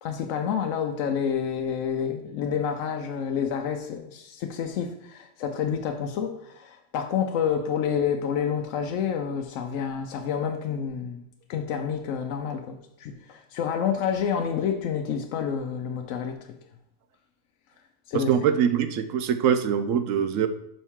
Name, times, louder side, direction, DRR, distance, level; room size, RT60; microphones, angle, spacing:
voice 1, 0.0-11.2 11.5-16.5 18.1-18.3, left 7 dB, 80° left, 5 dB, 1.0 m, -29 dB
voice 2, 18.1-20.5, right 8 dB, 90° right, 9 dB, 1.0 m, -23 dB
7.1 x 5.4 x 3.6 m, 0.78 s
omnidirectional pair, 1.3 m